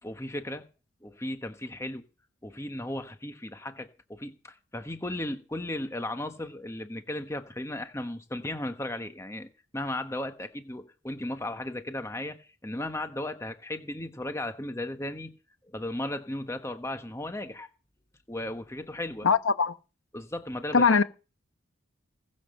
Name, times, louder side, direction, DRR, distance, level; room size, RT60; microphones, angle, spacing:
voice 1, 0.0-0.6 1.0-2.0 2.4-15.3 15.7-17.7 18.3-19.3 20.1-20.8, left 1 dB, 15° left, 1.2 m, -35 dB
voice 2, 19.2-19.7 20.7-21.0, left 5 dB, 90° left, 1.0 m, -21 dB
19.5 x 7.6 x 6.5 m
head